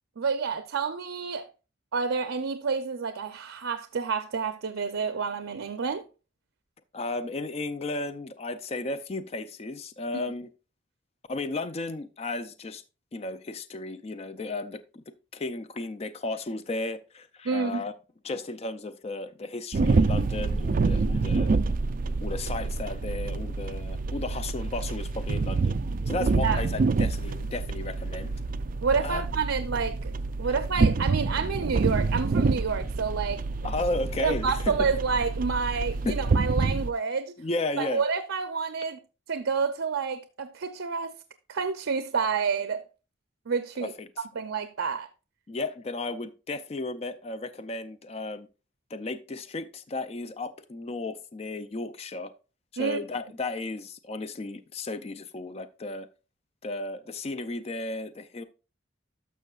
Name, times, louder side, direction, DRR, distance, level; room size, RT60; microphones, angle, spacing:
voice 1, 0.2-1.5 1.9-6.0 17.4-17.8 26.4-26.6 28.8-30.1 30.4-33.4 34.2-37.3 37.8-39.0 39.3-41.1 41.5-42.8 43.5-43.9 44.4-45.1 52.8-53.0, right 5 dB, 85° right, 0.6 m, -29 dB
voice 2, 6.9-10.5 11.3-12.8 13.1-15.0 15.3-17.9 18.2-21.6 22.2-25.8 26.1-28.3 29.0-29.2 33.6-34.9 36.0-36.2 37.4-38.0 43.8-44.2 45.5-48.5 48.9-52.3 52.7-56.1 56.6-58.4, left 2 dB, 30° left, 0.4 m, -34 dB
sound 1, 19.7-36.9, right 3 dB, 45° right, 0.3 m, -27 dB
12.0 x 6.4 x 2.4 m
head